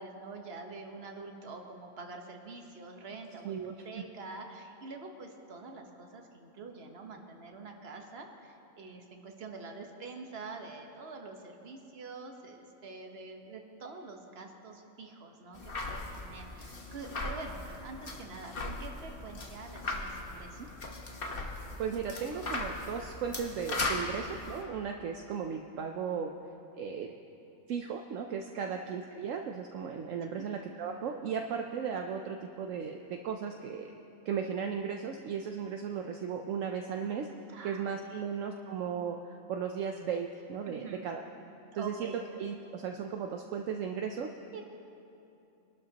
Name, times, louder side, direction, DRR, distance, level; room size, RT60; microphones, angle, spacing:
voice 1, 0.0-20.7 24.0-24.3 28.5-28.8 30.2-30.4 37.5-38.3 40.7-41.1 41.7-42.2 44.5-44.6, right 3 dB, 50° right, 2 dB, 1.4 m, -46 dB
voice 2, 3.4-4.0 20.6-20.7 21.8-26.3 26.7-27.1 27.7-33.0 33.2-33.9 34.2-37.3 37.6-39.2 39.5-41.2 41.7-42.1 42.4-44.3, right 7 dB, 70° right, 3 dB, 1.0 m, -36 dB
sound 1, 15.5-24.6, left 2 dB, 45° left, 1.4 m, -38 dB
24.5 x 12.0 x 2.9 m, 2.8 s
omnidirectional pair, 1.4 m